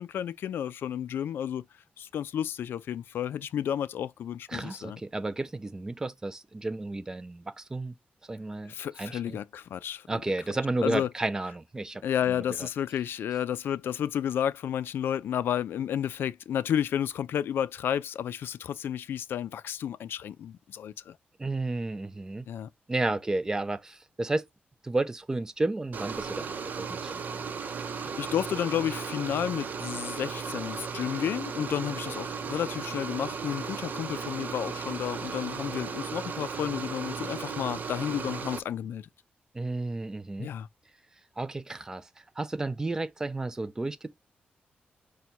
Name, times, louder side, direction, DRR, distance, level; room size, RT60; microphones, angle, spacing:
voice 1, 0.0-1.7 2.0-5.0 8.7-10.1 10.8-11.1 12.0-21.2 22.5-22.7 27.9-39.1 40.4-40.7, left 9 dB, 85° left, 0.3 m, -31 dB
voice 2, 4.5-7.9 8.3-9.4 10.1-12.0 12.6-12.7 21.4-22.5 22.9-24.5 24.8-27.3 39.5-40.5 41.4-42.1 42.4-44.1, right 2 dB, 15° right, 0.5 m, -32 dB
sound 1, 25.9-38.6, right 5 dB, 55° right, 0.7 m, -36 dB
5.2 x 2.2 x 4.5 m
wide cardioid pair, 145°, 4 cm